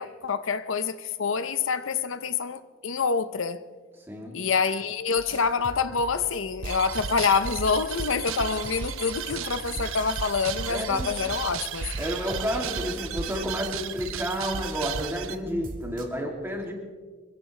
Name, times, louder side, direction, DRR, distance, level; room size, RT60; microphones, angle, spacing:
voice 1, 0.0-3.6 4.3-11.9, left 5 dB, 75° left, 0.7 m, -27 dB
voice 2, 4.1-4.4 10.7-11.1 12.0-16.7, equal, 10° right, 2.6 m, -31 dB
sound 1, 5.2-13.7 14.0-16.0, right 1 dB, 40° right, 1.8 m, -43 dB
sound 2, 6.6-15.4, right 7 dB, 85° right, 0.7 m, -34 dB
Scratching (performance technique), 8.2-12.8, right 5 dB, 60° right, 2.7 m, -43 dB
24.5 x 16.5 x 3.3 m
head